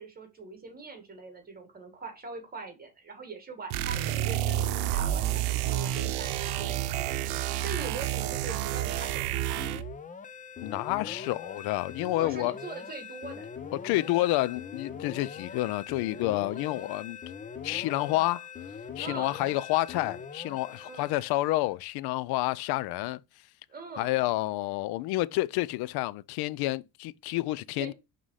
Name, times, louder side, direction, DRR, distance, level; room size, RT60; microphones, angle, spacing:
voice 1, 0.0-7.3 7.6-9.6 12.2-13.5 13.8-14.1 19.0-19.4 20.8-21.1 23.7-24.2 27.8-27.9, right 4 dB, 25° right, 2.1 m, -42 dB
sound 1, 3.7-10.0, right 12 dB, 85° right, 0.7 m, -30 dB
sound 2, 9.6-21.7, left 6 dB, 20° left, 0.5 m, -42 dB
voice 2, 10.6-12.5 13.8-17.2 17.6-18.5 19.0-23.2 24.0-27.9, left 17 dB, 80° left, 0.5 m, -29 dB
5.6 x 3.8 x 4.8 m
cardioid pair, 125°, 37 cm